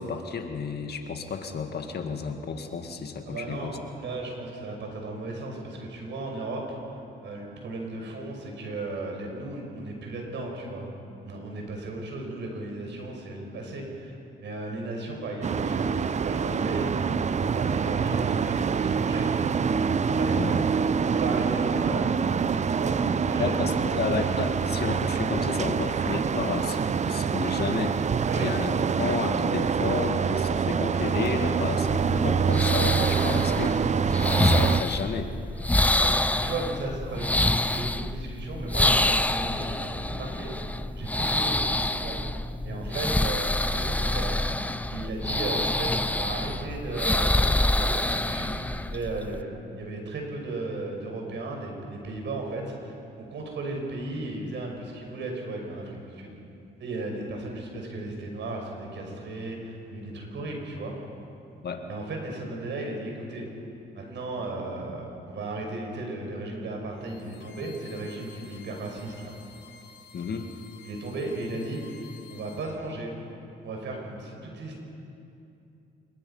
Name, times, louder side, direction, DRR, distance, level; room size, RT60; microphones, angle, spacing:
voice 1, 0.0-3.8 20.3-20.6 23.4-28.1 28.4-35.3 61.6-61.9 70.1-70.5, left 5 dB, 55° left, 5 dB, 2.1 m, -32 dB
voice 2, 3.3-6.6 7.2-10.9 11.2-14.1 14.4-19.6 20.1-20.7 21.0-22.1 22.7-24.0 28.3-28.5 36.0-40.7 41.0-42.3 42.6-44.4 44.9-48.6 48.9-56.3 56.8-61.0 61.9-63.5 63.9-69.4 70.8-71.8 72.3-73.1 73.6-74.8, right 2 dB, 65° right, 1 dB, 5.8 m, -35 dB
sound 1, 15.4-34.8, right 6 dB, 35° right, 0.6 m, -25 dB
sound 2, 31.9-49.4, left 1 dB, 5° left, 0.7 m, -27 dB
sound 3, 66.9-72.7, left 6 dB, 80° left, 3.9 m, -51 dB
26.0 x 21.5 x 5.7 m, 2.7 s
cardioid pair, 90°, 20 cm